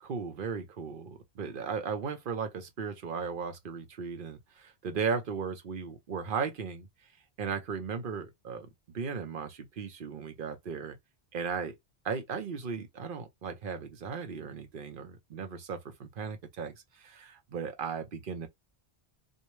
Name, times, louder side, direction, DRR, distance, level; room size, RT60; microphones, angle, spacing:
voice 1, 0.0-6.9 7.4-8.7 8.9-11.0 11.3-11.7 12.0-18.5, right 6 dB, 55° right, 0.9 m, -36 dB
4.4 x 2.2 x 3.1 m
omnidirectional pair, 1.1 m